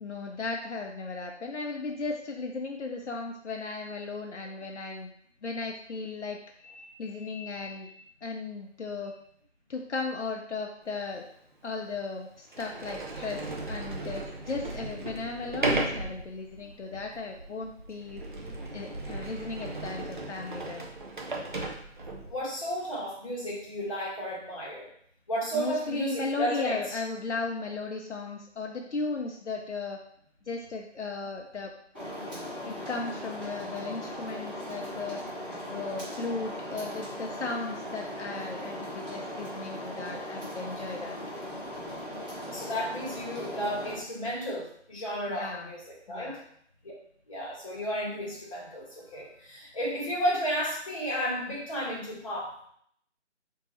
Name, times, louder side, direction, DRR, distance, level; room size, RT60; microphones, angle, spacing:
voice 1, 0.0-5.1 5.4-6.4 7.0-7.9 8.2-9.2 9.7-11.2 11.6-18.2 18.7-20.9 25.5-30.0 30.5-31.7 32.6-35.2 35.7-41.2 45.3-45.7 46.1-46.4, left 3 dB, 70° left, 1 dB, 0.6 m, -36 dB
voice 2, 6.6-7.9 22.2-24.9 25.3-27.0 42.4-46.4 46.8-46.9 47.3-52.7, equal, 30° left, -6 dB, 1.0 m, -33 dB
Sliding door, 11.1-11.2 11.9-12.0 12.5-22.4, right 2 dB, 40° right, 0.5 m, -36 dB
sound 1, 31.9-44.0, equal, 5° right, 0.8 m, -38 dB
3.6 x 2.7 x 3.1 m, 0.65 s
figure-of-eight pair, 160°, 36 cm